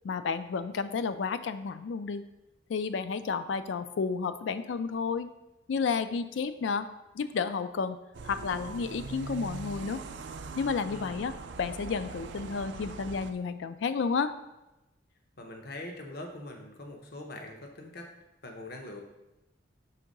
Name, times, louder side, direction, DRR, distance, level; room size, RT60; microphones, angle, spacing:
voice 1, 0.0-2.2 2.7-5.3 5.7-6.9 7.1-8.0 8.2-10.0 10.6-14.3, left 5 dB, 75° left, 12 dB, 0.4 m, -31 dB
sound 1, 8.1-13.3, right 3 dB, 65° right, 0.4 m, -41 dB
voice 2, 10.8-11.4 15.4-18.1 18.4-19.0, left 1 dB, 55° left, 2 dB, 0.9 m, -43 dB
5.8 x 3.6 x 5.2 m, 0.98 s
head